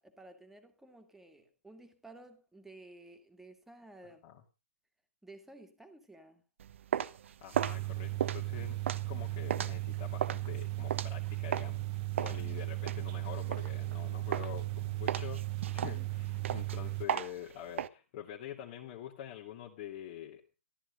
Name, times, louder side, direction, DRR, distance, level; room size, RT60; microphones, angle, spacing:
voice 1, 0.0-4.2 5.2-6.4 12.2-12.6 15.8-16.1, right 2 dB, 5° right, 2.3 m, -54 dB
sound 1, 6.6-11.8 12.2-14.0 14.3-14.7 15.1-17.9, right 9 dB, 55° right, 1.0 m, -36 dB
voice 2, 7.4-11.8 12.2-20.6, left 10 dB, 35° left, 2.5 m, -46 dB
sound 2, 7.5-17.1, right 19 dB, 30° right, 0.9 m, -36 dB
14.0 x 13.0 x 5.3 m
hypercardioid pair, 135°, 8 cm